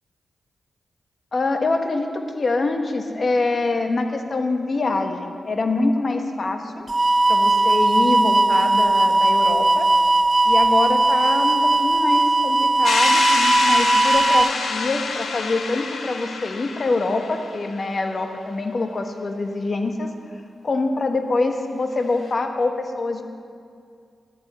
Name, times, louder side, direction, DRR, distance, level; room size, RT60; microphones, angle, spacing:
voice 1, 1.3-6.9 7.3-9.9 10.4-20.1 20.6-23.2, left 3 dB, 50° left, 5 dB, 1.2 m, -25 dB
sound 1, 6.9-14.5, right 2 dB, 30° right, 0.3 m, -18 dB
sound 2, 12.8-17.6, left 4 dB, 80° left, 0.9 m, -26 dB
13.5 x 11.5 x 4.3 m, 2.3 s
cardioid pair, 60°, 0 cm